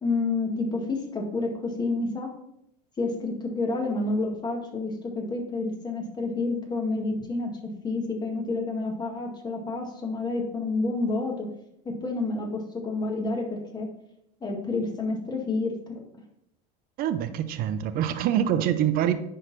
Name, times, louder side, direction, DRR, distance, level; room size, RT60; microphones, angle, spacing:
voice 1, 0.0-2.3 3.0-11.5 11.9-13.9 14.4-16.0, left 3 dB, 20° left, 1 dB, 1.9 m, -29 dB
voice 2, 17.0-19.1, right 10 dB, 45° right, 10 dB, 0.7 m, -25 dB
10.0 x 4.1 x 4.2 m, 0.77 s
supercardioid pair, 125°, 21 cm